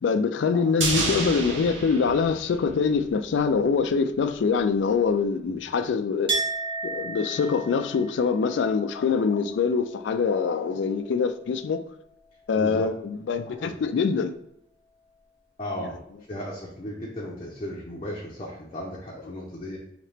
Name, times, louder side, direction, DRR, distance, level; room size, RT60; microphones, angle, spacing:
voice 1, 0.0-6.3 6.8-11.8 12.5-14.3, left 5 dB, 70° left, 0.3 m, -24 dB
sound 1, 0.8-3.2 3.5-3.6, right 3 dB, 75° right, 0.9 m, -30 dB
Chink clink, 6.3-11.8 12.1-13.0, right 3 dB, 30° right, 0.7 m, -35 dB
voice 2, 12.6-12.9 13.4-13.7 15.6-16.0 16.3-19.8, left 1 dB, 30° left, 0.6 m, -35 dB
4.1 x 2.9 x 3.2 m
head